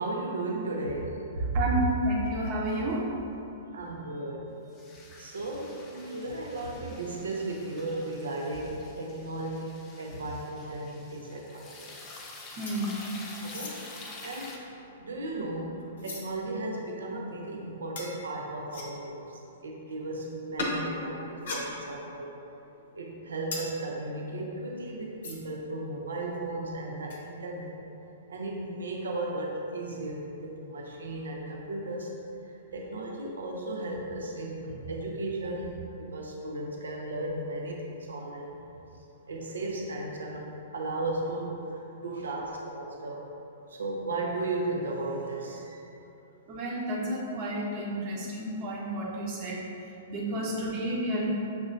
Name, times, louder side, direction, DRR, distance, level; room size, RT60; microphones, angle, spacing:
voice 1, 0.0-1.6 3.7-4.5 5.2-11.9 13.4-22.3 22.9-27.8 28.3-32.1 32.4-38.6 39.3-43.2 43.7-45.9 50.3-50.4, right 2 dB, 65° right, -1 dB, 0.5 m, -35 dB
voice 2, 1.5-3.1 12.6-13.0 46.5-49.6 50.1-51.3, right 1 dB, 35° right, -4 dB, 0.9 m, -31 dB
sound 1, 4.7-14.6, left 2 dB, 20° left, 0.6 m, -48 dB
sound 2, 12.7-13.1 13.4-13.8 14.5-16.3 16.8-16.9 18.0-18.1 18.7-19.1 20.6-20.8 21.3-22.2 22.5-25.6 25.9-26.0 26.2-26.5 27.1-27.3, left 2 dB, 55° left, 0.7 m, -39 dB
6.8 x 2.9 x 2.6 m, 2.9 s
figure-of-eight pair, 110°, 0 cm